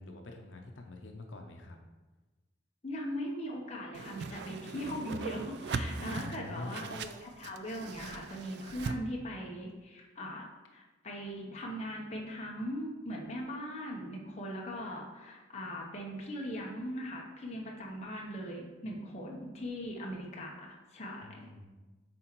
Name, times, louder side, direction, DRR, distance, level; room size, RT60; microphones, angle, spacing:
voice 1, 0.0-1.8 6.0-6.7 21.2-21.6, left 2 dB, 85° left, 3 dB, 0.7 m, -46 dB
voice 2, 2.8-21.6, equal, 35° left, -1 dB, 0.9 m, -40 dB
Whoosh swoosh swish, 3.9-9.0, right 4 dB, 60° right, 0.3 m, -39 dB
7.7 x 4.3 x 3.0 m, 1.2 s
head